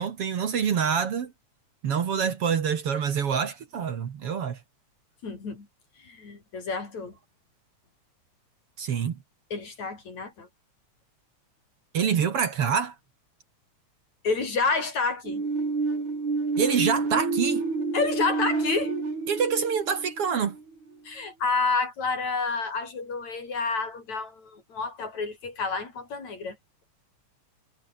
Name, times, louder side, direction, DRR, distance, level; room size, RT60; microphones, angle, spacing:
voice 1, 0.0-1.3 1.8-4.6 8.8-9.2 11.9-13.0 16.6-17.7 19.3-20.6, right 7 dB, 55° right, 2.4 m, -26 dB
voice 2, 5.2-5.7 6.0-7.2 9.5-10.5 14.2-15.4 17.9-19.0 21.1-26.6, left 4 dB, 65° left, 6.9 m, -29 dB
sound 1, 15.2-20.9, right 4 dB, 70° right, 8.0 m, -29 dB
omnidirectional pair, 3.4 m